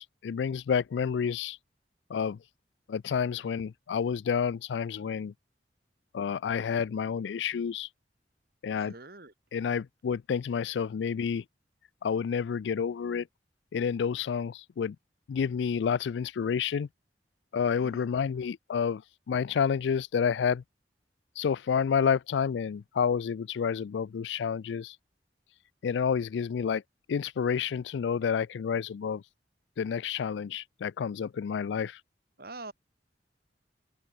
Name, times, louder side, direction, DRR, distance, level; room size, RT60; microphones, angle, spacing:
voice 1, 0.0-1.6 2.1-2.4 2.9-5.3 6.1-7.9 8.6-8.9 9.5-11.4 12.0-13.3 13.7-15.0 15.3-16.9 17.5-19.0 19.3-20.6 21.4-25.0 25.8-26.8 27.1-29.2 29.8-32.0, left 7 dB, 85° left, 0.4 m, -29 dB
voice 2, 8.8-9.3 17.8-18.1 32.4-32.7, right 3 dB, 60° right, 3.9 m, -44 dB
head